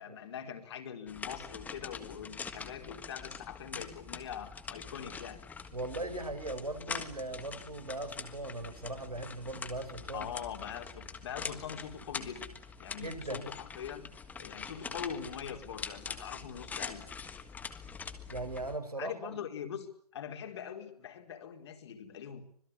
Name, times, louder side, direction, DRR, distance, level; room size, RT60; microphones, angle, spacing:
voice 1, 0.0-5.4 10.1-12.5 12.8-14.1 14.4-17.0 19.0-19.9 20.1-22.4, left 8 dB, 45° left, 4 dB, 4.6 m, -42 dB
sound 1, 1.1-18.8, left 5 dB, 10° left, 1.6 m, -44 dB
voice 2, 5.7-10.3 12.9-13.5 18.3-19.4, right 2 dB, 85° right, 8 dB, 5.1 m, -39 dB
25.5 x 21.5 x 8.5 m, 0.63 s
figure-of-eight pair, 130°, 19 cm